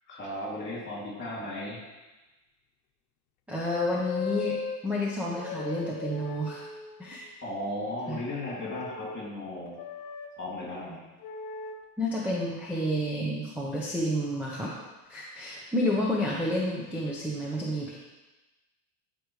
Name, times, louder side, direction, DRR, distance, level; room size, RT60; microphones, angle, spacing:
voice 1, 0.1-1.8 7.4-9.8 10.4-11.1, left 1 dB, 25° left, -4 dB, 3.0 m, -36 dB
voice 2, 3.5-4.6 4.8-6.7 7.0-7.3 8.1-8.2 12.0-14.7 15.1-18.0, left 1 dB, 5° right, -5 dB, 1.0 m, -30 dB
sound 1, 3.7-4.8 5.3-7.1 8.6-9.2 9.8-10.3 11.2-11.8 12.7-13.0, left 5 dB, 85° left, 1.0 m, -37 dB
12.0 x 5.1 x 3.3 m, 1.1 s
cardioid pair, 130°, 45 cm